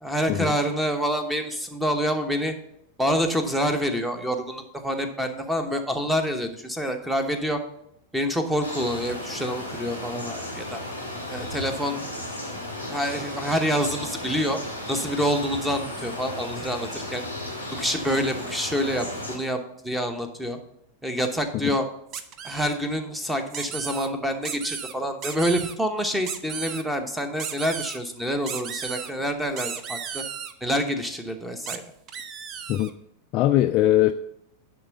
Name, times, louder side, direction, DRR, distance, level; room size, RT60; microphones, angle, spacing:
voice 1, 0.0-2.5 3.0-7.6 8.1-10.8 11.3-12.1 12.9-14.6 14.9-17.2 17.8-20.6 21.0-21.9 22.4-30.2 30.6-31.8, equal, 5° right, 7 dB, 1.0 m, -27 dB
sound 1, 8.6-19.4, left 1 dB, 85° right, 2.6 m, -34 dB
sound 2, 22.1-22.8 23.5-24.1 24.4-24.9 25.2-25.7 26.2-26.8 27.4-28.0 28.5-29.1 29.6-30.5 31.7-31.8 32.1-32.9, right 7 dB, 35° right, 0.6 m, -34 dB
voice 2, 33.3-34.1, left 13 dB, 40° left, 8 dB, 0.3 m, -21 dB
10.0 x 3.8 x 6.6 m, 0.76 s
figure-of-eight pair, 90°, 0 cm